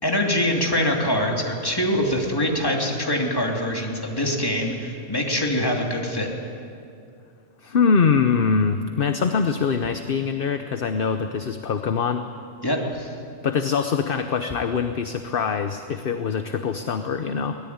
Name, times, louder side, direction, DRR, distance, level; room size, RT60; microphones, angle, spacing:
voice 1, 0.0-6.3 12.6-13.1, left 1 dB, 15° left, 0 dB, 2.9 m, -24 dB
voice 2, 7.6-12.3 13.4-17.6, left 5 dB, 50° left, 8 dB, 1.0 m, -23 dB
23.5 x 18.0 x 9.5 m, 2.5 s
omnidirectional pair, 1.4 m